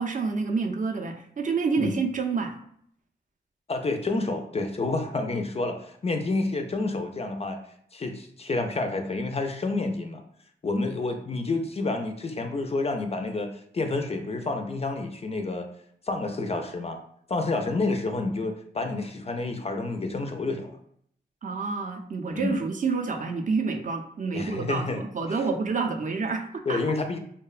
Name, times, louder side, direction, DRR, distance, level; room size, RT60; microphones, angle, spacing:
voice 1, 0.0-2.6 21.4-26.8, right 4 dB, 40° right, 4 dB, 0.4 m, -28 dB
voice 2, 3.7-7.6 7.9-10.2 10.6-15.7 16.1-17.0 17.3-20.8 22.3-22.6 24.3-25.0 26.7-27.2, left 3 dB, 30° left, 5 dB, 0.3 m, -29 dB
2.7 x 2.1 x 2.4 m, 0.66 s
cardioid pair, 50°, 20 cm